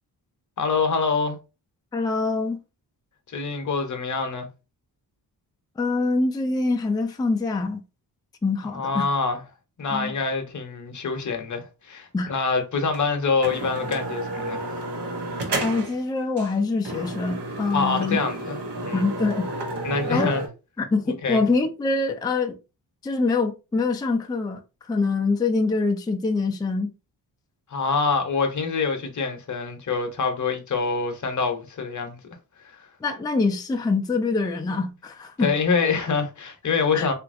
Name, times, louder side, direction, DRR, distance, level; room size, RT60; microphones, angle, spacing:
voice 1, 0.6-1.4 3.3-4.5 8.6-9.4 9.8-14.6 17.7-18.6 18.8-19.0 19.8-20.4 21.2-21.4 27.7-32.2 32.6-32.9 35.4-37.1, left 4 dB, 45° left, 0.8 m, -25 dB
voice 2, 1.9-2.6 5.8-7.8 8.4-9.0 9.9-10.1 12.1-12.3 15.6-18.2 18.9-19.5 20.1-20.3 20.8-22.6 23.0-26.9 33.0-35.5 36.9-37.1, left 3 dB, 10° left, 0.4 m, -24 dB
sound 1, 12.9-13.0 13.4-16.0 16.4-16.5 16.9-20.5, right 2 dB, 70° right, 0.9 m, -31 dB
2.9 x 2.6 x 2.5 m
cardioid pair, 85°, 42 cm